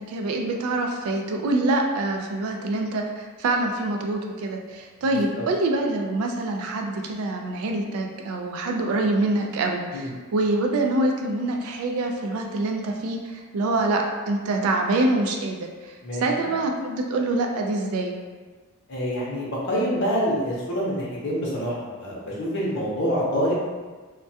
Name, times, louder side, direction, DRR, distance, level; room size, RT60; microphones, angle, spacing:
voice 1, 0.0-15.9 16.2-18.2, right 2 dB, 75° right, 2 dB, 0.3 m, -25 dB
voice 2, 18.9-23.6, equal, 55° left, -5 dB, 0.6 m, -26 dB
2.2 x 2.2 x 2.6 m, 1.4 s
head